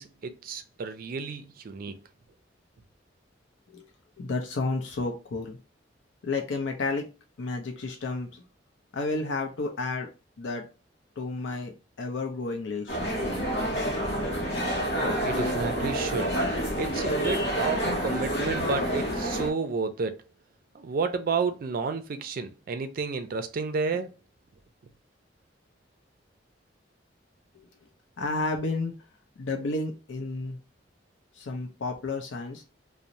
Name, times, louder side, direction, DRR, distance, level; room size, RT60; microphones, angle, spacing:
voice 1, 0.0-2.0 15.2-16.4 16.8-20.2 20.7-24.1, right 4 dB, 50° right, 0.4 m, -31 dB
voice 2, 4.2-5.6 6.2-7.1 7.4-8.4 8.9-10.1 10.4-10.7 11.2-11.7 12.0-13.0 28.2-28.9 29.4-30.6 31.3-32.6, left 3 dB, 85° left, 0.5 m, -31 dB
sound 1, 12.9-19.5, equal, 60° left, 0.9 m, -28 dB
2.6 x 2.0 x 2.9 m
head